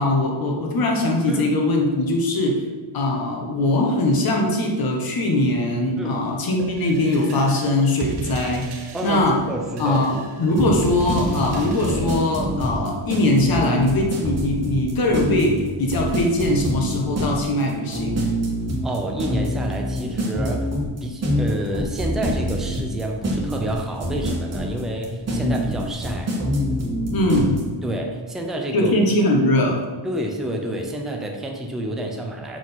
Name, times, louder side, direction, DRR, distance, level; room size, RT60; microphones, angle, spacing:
voice 1, 0.0-2.6 2.9-9.4 9.8-18.2 27.1-27.6 28.7-29.8, left 1 dB, 45° left, 0 dB, 1.4 m, -21 dB
sound 1, 6.6-12.2, right 3 dB, 55° right, 0.9 m, -35 dB
voice 2, 8.9-10.0 18.8-20.7 21.0-26.3 27.8-28.9 30.0-32.6, right 1 dB, ahead, 1 dB, 0.6 m, -28 dB
sound 2, 10.6-27.6, equal, 30° right, 1.4 m, -25 dB
5.8 x 5.0 x 5.8 m, 1.4 s
wide cardioid pair, 180°, 47 cm